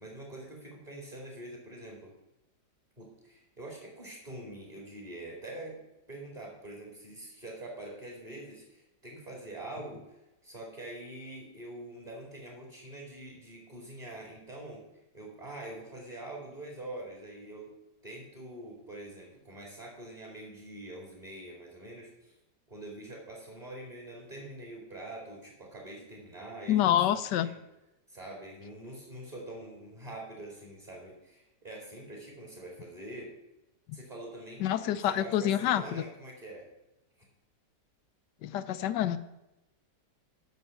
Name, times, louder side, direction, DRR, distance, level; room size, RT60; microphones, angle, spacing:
voice 1, 0.0-2.1 3.0-5.8 6.1-10.2 10.4-14.9 15.1-17.7 18.0-22.4 22.7-27.6 28.1-33.3 33.9-36.7, right 1 dB, 25° right, -1 dB, 2.3 m, -45 dB
voice 2, 26.7-27.5 34.6-36.0 38.4-39.2, left 11 dB, 75° left, 12 dB, 1.2 m, -27 dB
9.5 x 6.2 x 6.7 m, 0.96 s
omnidirectional pair, 1.9 m